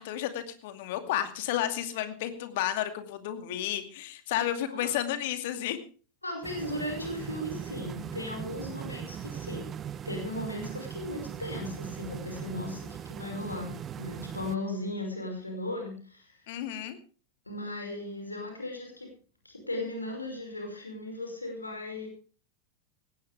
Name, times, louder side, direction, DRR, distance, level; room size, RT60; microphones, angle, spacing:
voice 1, 0.0-5.8 16.5-17.0, left 11 dB, 50° left, 9 dB, 2.4 m, -32 dB
voice 2, 6.2-9.7 10.1-16.4 17.5-19.1 19.4-22.1, left 1 dB, 80° left, 3 dB, 5.5 m, -37 dB
sound 1, 6.4-14.6, right 9 dB, 25° right, 0.7 m, -40 dB
18.5 x 16.0 x 3.5 m, 0.37 s
figure-of-eight pair, 90°, 0 cm